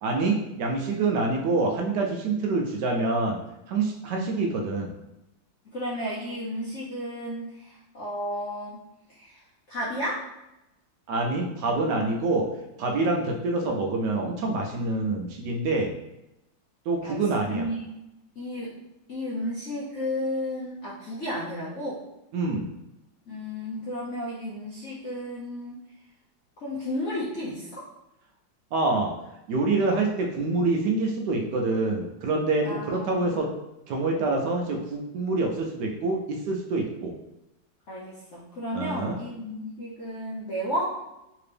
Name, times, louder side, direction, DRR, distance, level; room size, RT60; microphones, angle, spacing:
voice 1, 0.0-3.4 3.7-4.9 11.1-12.5 12.8-15.9 16.9-17.7 22.3-22.7 28.7-29.1 29.5-33.5 33.9-37.1 38.7-39.2, right 3 dB, 75° right, 1 dB, 1.1 m, -26 dB
voice 2, 5.7-8.8 9.1-9.4 9.7-10.2 17.0-17.2 17.5-17.9 18.4-18.7 19.1-22.0 23.3-25.8 26.6-27.7 32.6-33.4 37.9-41.0, equal, 65° left, -7 dB, 0.7 m, -33 dB
3.3 x 2.9 x 3.3 m, 0.92 s
omnidirectional pair, 2.1 m